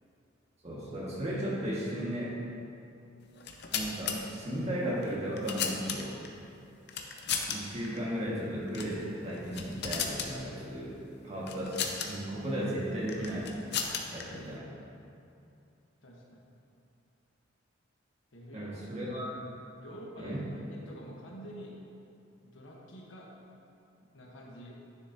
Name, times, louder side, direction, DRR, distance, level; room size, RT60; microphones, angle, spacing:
voice 1, 0.6-2.3 3.7-6.1 7.5-11.0 11.2-11.8 12.1-13.5 14.1-14.6 18.5-19.4 20.2-20.5, equal, 35° right, -7 dB, 1.7 m, -35 dB
sound 1, 3.3-4.2 5.0-6.3 6.9-7.6 7.8-8.0 8.7-9.0 9.3-10.3 11.5-12.1 13.1-14.2, left 7 dB, 60° left, 0.6 m, -34 dB
voice 2, 16.0-16.5 18.3-19.1 19.8-21.9 22.4-23.6 24.1-24.7, equal, 85° left, -2 dB, 1.2 m, -48 dB
9.7 x 6.7 x 2.8 m, 2.7 s
head